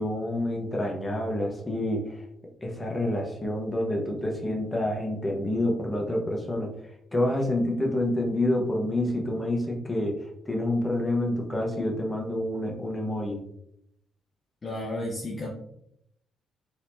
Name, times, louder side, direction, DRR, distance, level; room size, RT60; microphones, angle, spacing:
voice 1, 0.0-2.2 2.6-6.7 7.1-10.2 10.5-13.4, left 1 dB, 15° left, -1 dB, 1.0 m, -28 dB
voice 2, 14.6-15.5, left 1 dB, 30° left, -2 dB, 0.7 m, -32 dB
4.1 x 2.9 x 2.6 m, 0.75 s
cardioid pair, 90°, 0 cm